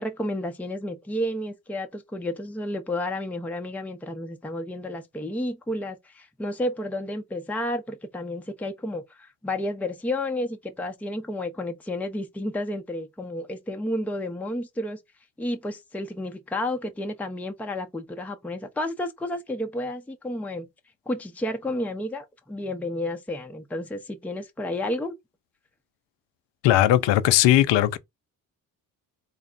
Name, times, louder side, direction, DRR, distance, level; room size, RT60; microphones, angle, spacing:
voice 1, 0.0-15.0 15.4-20.7 21.1-25.1, left 1 dB, 5° left, 0.6 m, -31 dB
voice 2, 26.6-28.0, left 13 dB, 70° left, 0.6 m, -18 dB
3.4 x 2.1 x 3.8 m
supercardioid pair, 55°, 45 cm